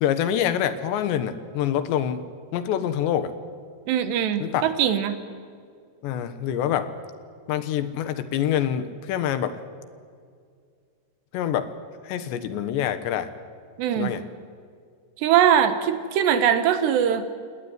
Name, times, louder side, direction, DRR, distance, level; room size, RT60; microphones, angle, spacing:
voice 1, 0.0-2.2 2.5-3.3 4.4-4.7 6.0-6.9 7.5-9.6 11.3-11.7 12.1-13.3 14.0-14.2, left 10 dB, 90° left, 11 dB, 3.5 m, -26 dB
voice 2, 3.9-5.2 13.8-14.2 15.2-17.3, right 9 dB, 80° right, 9 dB, 3.5 m, -21 dB
28.5 x 18.0 x 9.6 m, 2.2 s
omnidirectional pair, 4.9 m